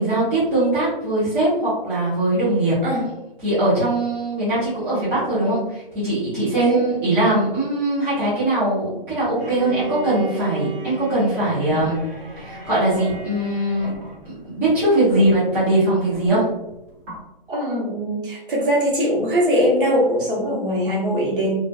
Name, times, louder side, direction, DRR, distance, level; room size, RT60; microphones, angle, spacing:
voice 1, 0.0-2.7 3.4-12.0 12.4-13.9 14.2-16.4, right 1 dB, 5° right, -13 dB, 0.7 m, -21 dB
Bowed string instrument, 9.4-14.3, right 4 dB, 85° right, 0.9 m, -35 dB
sound 1, 11.7-17.2, right 1 dB, 25° right, 1.2 m, -38 dB
voice 2, 17.5-21.5, equal, 60° right, -3 dB, 1.1 m, -21 dB
2.5 x 2.4 x 2.2 m, 0.92 s
hypercardioid pair, 150°, 29 cm